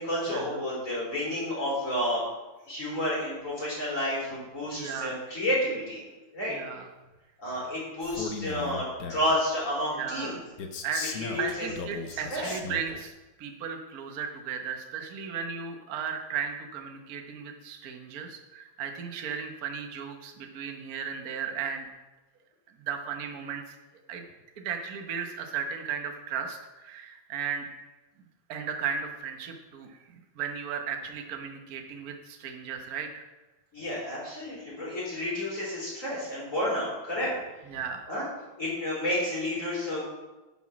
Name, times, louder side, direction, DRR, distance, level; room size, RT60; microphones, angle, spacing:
voice 1, 0.0-2.2 2.7-6.0 6.3-6.5 7.4-10.4 11.2-11.7 12.1-12.5 33.7-37.3 38.1-38.2 38.6-40.0, left 1 dB, 35° left, -7 dB, 3.9 m, -30 dB
voice 2, 4.7-5.2 6.5-6.9 9.9-10.4 10.8-11.1 11.4-13.1 13.4-21.9 22.8-23.7 24.1-24.2 24.6-27.8 28.5-33.2 37.6-38.0, right 7 dB, 50° right, 4 dB, 1.3 m, -35 dB
Male speech man speaking, 8.0-9.4 10.6-13.0, left 5 dB, 55° left, 1.2 m, -37 dB
9.9 x 6.2 x 6.0 m, 1.1 s
omnidirectional pair, 2.3 m